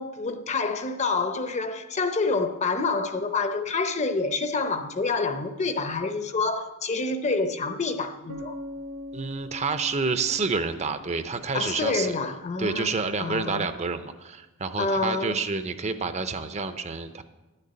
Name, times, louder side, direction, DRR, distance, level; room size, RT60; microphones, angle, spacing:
voice 1, 0.0-8.6 11.5-12.9 13.2-13.7 14.8-15.4, left 3 dB, 30° left, 0.7 m, -27 dB
Bass guitar, 8.3-12.1, left 1 dB, 80° right, 1.3 m, -42 dB
voice 2, 9.1-12.1 12.6-17.2, right 4 dB, 30° right, 0.5 m, -29 dB
11.0 x 6.6 x 8.7 m
head